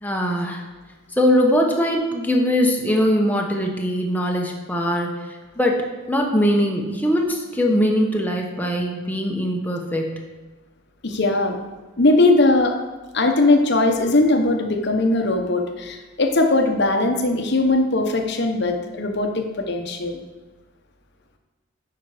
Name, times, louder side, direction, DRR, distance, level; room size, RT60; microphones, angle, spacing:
voice 1, 0.0-0.6 1.2-5.2 5.6-10.1, equal, 10° left, 1 dB, 1.0 m, -21 dB
voice 2, 11.0-11.6 12.0-12.8 13.1-20.2, left 2 dB, 55° left, 4 dB, 1.0 m, -19 dB
9.4 x 5.9 x 5.0 m, 1.2 s
head